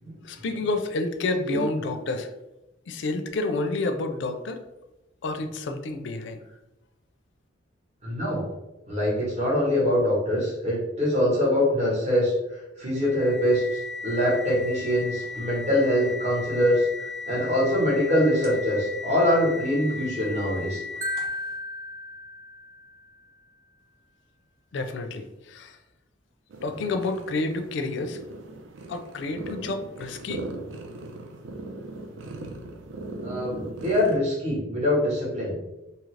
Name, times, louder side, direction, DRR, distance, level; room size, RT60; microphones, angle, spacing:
voice 1, 0.2-2.3 2.9-4.6 5.2-6.4 24.7-25.8 26.6-28.2 28.9-30.5, left 2 dB, 65° left, 7 dB, 0.4 m, -29 dB
voice 2, 8.0-8.5 8.9-20.8 32.3-32.4 33.2-35.6, left 1 dB, 35° right, -5 dB, 1.0 m, -24 dB
sound 1, 12.9-21.5, left 4 dB, 60° right, 0.8 m, -37 dB
Marimba xylophone, 21.0-23.1, left 1 dB, 15° right, 0.3 m, -34 dB
sound 2, 26.5-34.2, right 2 dB, 85° right, 0.5 m, -39 dB
2.7 x 2.5 x 3.1 m, 0.97 s
head